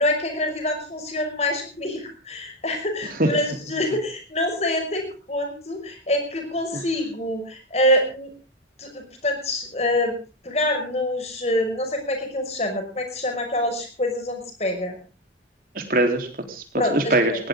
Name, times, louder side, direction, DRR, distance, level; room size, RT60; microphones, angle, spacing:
voice 1, 0.0-8.3 8.8-10.2 10.4-15.0 16.8-17.4, left 1 dB, 35° left, 5 dB, 5.6 m, -26 dB
voice 2, 3.2-3.6 6.7-6.8 15.7-17.5, right 1 dB, 50° right, 5 dB, 3.5 m, -23 dB
20.0 x 17.5 x 3.7 m, 0.34 s
head